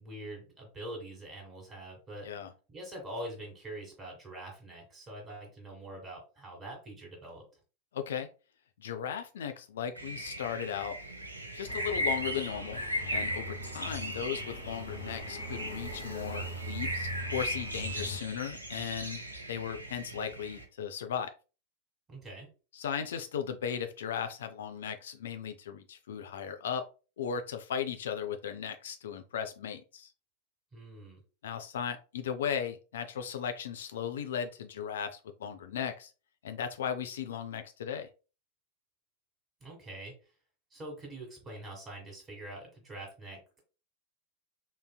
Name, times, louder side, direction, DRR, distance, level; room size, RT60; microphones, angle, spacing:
voice 1, 0.0-2.3 2.7-7.4 22.1-22.5 30.7-31.2 39.6-40.1 40.7-43.6, right 1 dB, 20° right, 1 dB, 1.5 m, -44 dB
voice 2, 7.9-8.3 8.8-11.0 11.5-12.8 13.1-19.2 19.5-21.3 22.7-26.8 27.2-30.1 31.4-36.1 36.4-38.1, left 8 dB, 60° left, 7 dB, 0.3 m, -36 dB
sound 1, 9.9-20.6, equal, 85° right, 0.5 m, -37 dB
sound 2, 11.7-18.2, equal, 75° left, 1.0 m, -42 dB
3.8 x 2.5 x 2.2 m, 0.33 s
figure-of-eight pair, 90°, 0 cm